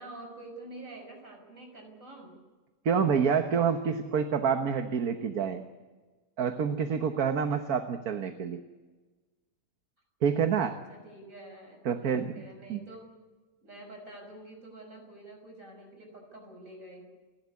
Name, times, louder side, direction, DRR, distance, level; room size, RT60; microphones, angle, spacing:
voice 1, 0.0-2.4 10.6-13.1 13.6-17.1, right 1 dB, 55° right, 3 dB, 6.6 m, -47 dB
voice 2, 2.9-5.6 6.4-8.6 10.2-10.8 11.9-12.4 12.7-12.8, right 6 dB, 70° right, 7 dB, 1.7 m, -27 dB
30.0 x 12.5 x 9.7 m, 1.3 s
omnidirectional pair, 1.7 m